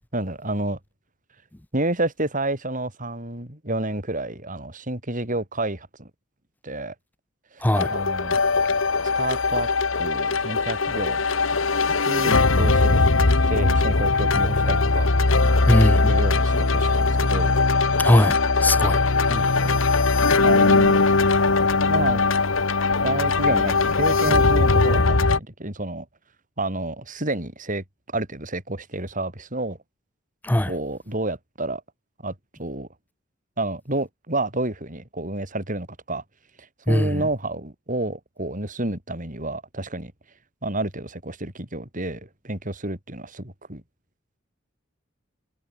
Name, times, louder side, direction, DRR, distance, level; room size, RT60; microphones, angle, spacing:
voice 1, 0.1-0.8 1.7-6.1 6.6-6.9 7.5-8.4 9.1-9.7 10.0-11.2 12.0-13.1 13.5-15.1 15.8-17.5 19.3-19.8 20.4-21.0 21.9-22.2 23.0-26.1 26.6-27.8 28.1-29.8 30.6-31.8 32.2-32.9 33.6-36.2 36.6-40.1 40.6-43.8, right 2 dB, 40° right, 5.6 m, -30 dB
sound 1, 7.7-25.4, left 3 dB, 80° left, 1.4 m, -20 dB
voice 2, 15.7-16.1 18.0-19.0 30.4-30.7 36.9-37.2, left 1 dB, 10° left, 0.7 m, -20 dB
head